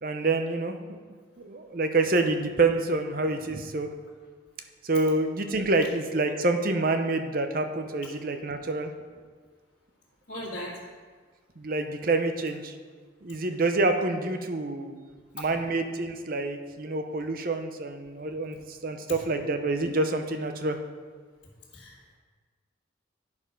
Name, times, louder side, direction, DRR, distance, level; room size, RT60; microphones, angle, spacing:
voice 1, 0.0-1.0 1.4-3.9 4.8-8.9 11.6-12.7 13.2-15.0 15.3-20.8, right 2 dB, 45° right, 7 dB, 0.7 m, -27 dB
voice 2, 10.3-10.8 15.4-15.5 21.7-22.2, equal, 60° left, -8 dB, 1.9 m, -38 dB
9.8 x 6.5 x 5.2 m, 1.5 s
head